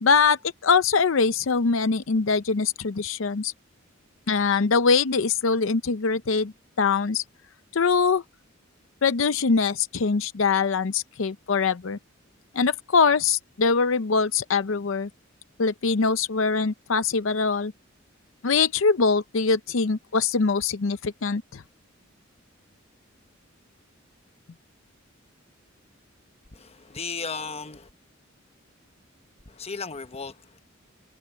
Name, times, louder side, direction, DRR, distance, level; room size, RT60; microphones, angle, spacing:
voice 1, 0.0-3.5 4.3-7.2 7.7-8.2 9.0-12.0 12.5-15.1 15.6-17.7 18.4-21.6, left 5 dB, 70° left, 0.6 m, -23 dB
voice 2, 26.5-27.9 29.5-30.6, left 5 dB, 30° left, 1.1 m, -35 dB
head